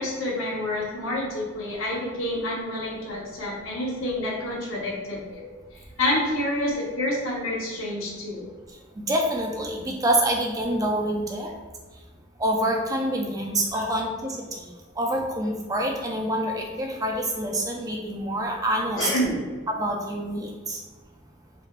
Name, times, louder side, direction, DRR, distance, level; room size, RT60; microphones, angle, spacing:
voice 1, 0.0-5.4 6.0-8.4 13.7-13.8 19.0-19.4, left 1 dB, 85° left, -4 dB, 1.0 m, -28 dB
voice 2, 9.1-11.5 12.4-14.4 15.0-19.1 19.7-20.8, right 1 dB, 15° right, 0 dB, 0.4 m, -26 dB
3.4 x 3.3 x 2.4 m, 1.4 s
head